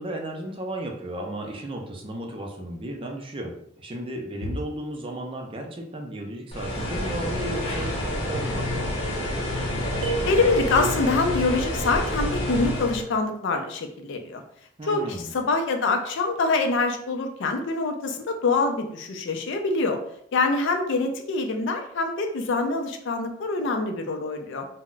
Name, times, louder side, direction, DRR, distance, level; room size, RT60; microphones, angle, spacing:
voice 1, 0.0-9.0 14.8-15.3, right 1 dB, 25° right, 1 dB, 0.4 m, -34 dB
sound 1, 6.5-13.0, left 1 dB, 30° left, 0.8 m, -28 dB
sound 2, 10.0-11.2, right 6 dB, 75° right, 0.7 m, -33 dB
voice 2, 10.3-14.4 14.8-20.0 20.3-24.7, left 3 dB, 60° left, 5 dB, 0.4 m, -25 dB
2.2 x 2.1 x 3.8 m, 0.69 s
head